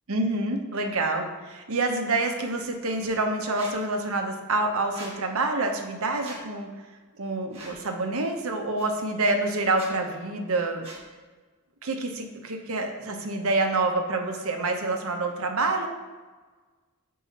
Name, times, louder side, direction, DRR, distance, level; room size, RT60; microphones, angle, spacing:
voice 1, 0.1-6.7 7.2-10.9 11.8-15.9, right 2 dB, 65° right, 4 dB, 0.8 m, -27 dB
Squeak, 3.6-3.7 4.9-5.1 6.2-6.4 7.5-7.8 8.8-8.9 9.7-9.9 10.8-11.0, right 2 dB, 25° right, 1.4 m, -41 dB
5.5 x 4.7 x 4.2 m, 1.4 s
head